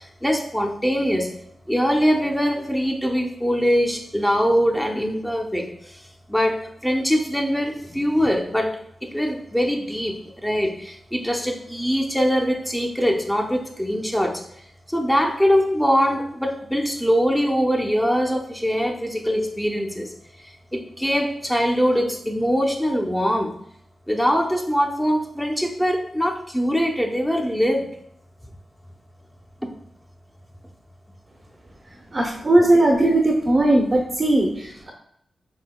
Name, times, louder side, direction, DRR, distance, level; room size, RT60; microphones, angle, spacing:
voice 1, 0.2-1.3 1.7-5.7 6.3-8.8 9.1-10.2 10.4-14.4 14.9-20.1 20.7-23.5 24.1-27.9, equal, 5° left, 1 dB, 0.7 m, -22 dB
voice 2, 31.9-34.9, right 1 dB, 45° right, 0 dB, 0.8 m, -19 dB
5.5 x 3.4 x 2.3 m, 0.71 s
cardioid pair, 50°, 0 cm